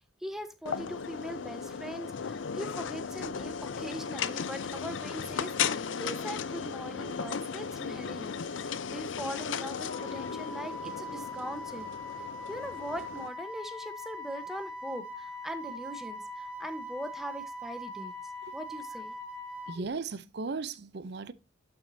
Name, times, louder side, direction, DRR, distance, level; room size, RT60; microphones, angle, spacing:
voice 1, 0.2-11.9 12.5-18.1 18.5-19.1 19.7-19.9, equal, ahead, 1.0 m, -41 dB
sound 1, 0.7-13.3, left 6 dB, 85° left, 0.5 m, -36 dB
Wind instrument woodwind instrument, 9.9-19.8, left 1 dB, 90° right, 2.2 m, -41 dB
voice 2, 19.7-21.3, right 4 dB, 60° right, 0.5 m, -36 dB
11.0 x 6.1 x 2.7 m
head